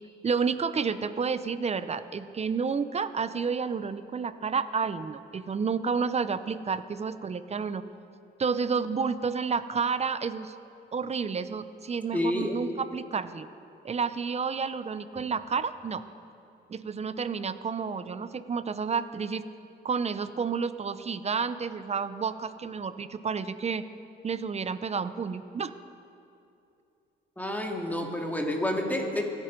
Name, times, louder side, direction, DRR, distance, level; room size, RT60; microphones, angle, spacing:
voice 1, 0.2-7.8 8.4-10.5 10.9-13.5 13.8-16.0 16.7-19.4 19.8-23.9 24.2-25.7, right 5 dB, 35° right, 13 dB, 0.6 m, -30 dB
voice 2, 12.1-12.5 27.4-29.2, left 1 dB, 10° left, 1 dB, 2.4 m, -29 dB
25.5 x 9.0 x 5.3 m, 2.7 s
cardioid pair, 90°, 20 cm